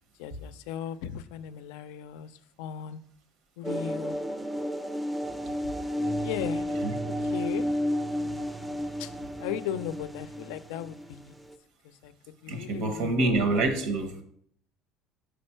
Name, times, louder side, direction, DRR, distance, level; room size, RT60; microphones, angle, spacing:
voice 1, 0.2-2.3 2.6-3.0 3.6-4.2 6.0-6.7 7.2-7.7 9.0-9.1 9.4-11.4 12.0-13.4, left 10 dB, 85° left, 12 dB, 0.4 m, -37 dB
sound 1, 3.6-11.5, equal, 5° right, 0.4 m, -32 dB
voice 2, 12.5-14.1, right 2 dB, 75° right, 6 dB, 1.1 m, -26 dB
5.1 x 4.3 x 4.4 m, 0.66 s
supercardioid pair, 105°, 0 cm